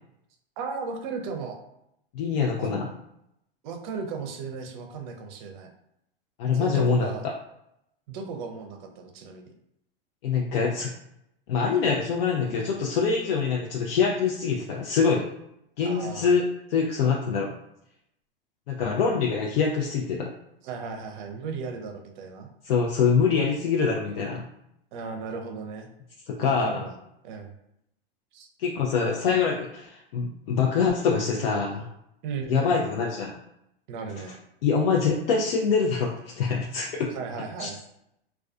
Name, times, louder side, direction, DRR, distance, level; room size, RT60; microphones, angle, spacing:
voice 1, 0.6-1.6 2.6-2.7 3.6-5.7 6.5-7.3 8.1-9.5 15.8-16.3 20.6-22.5 24.9-25.9 26.4-27.0 27.2-27.5 28.3-28.5 32.2-33.0 33.9-34.4 37.1-37.8, right 5 dB, 50° right, 4 dB, 0.5 m, -36 dB
voice 2, 2.1-2.9 6.4-7.1 10.2-10.9 11.5-15.3 15.8-16.4 16.7-17.5 18.7-20.3 22.6-24.4 26.3-26.8 28.6-31.9 32.5-33.3 34.6-37.1 37.6-37.7, left 5 dB, 65° left, -1 dB, 0.5 m, -24 dB
2.3 x 2.2 x 2.4 m, 0.79 s
hypercardioid pair, 120°, 31 cm